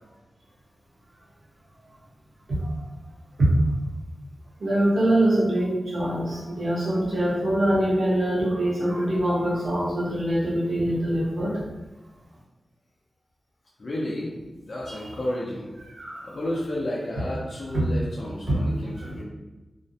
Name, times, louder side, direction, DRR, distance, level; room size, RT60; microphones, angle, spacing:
voice 1, 4.6-11.6 14.9-15.1 16.0-16.3 17.7-17.8 18.5-18.6 19.0-19.2, right 1 dB, 80° right, -7 dB, 0.9 m, -24 dB
voice 2, 13.8-15.7 16.0-19.2, left 1 dB, 50° left, -6 dB, 0.5 m, -32 dB
2.4 x 2.1 x 2.6 m, 1.1 s
wide cardioid pair, 125°, 0 cm